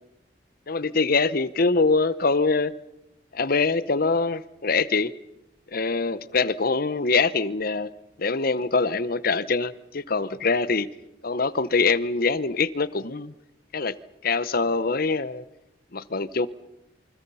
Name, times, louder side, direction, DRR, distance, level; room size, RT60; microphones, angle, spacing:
voice 1, 0.7-2.7 3.3-5.1 5.7-7.9 8.2-10.9 11.2-13.3 13.7-14.0 14.2-15.4 15.9-16.5, left 4 dB, 50° left, 0.9 m, -24 dB
28.5 x 25.0 x 5.6 m
head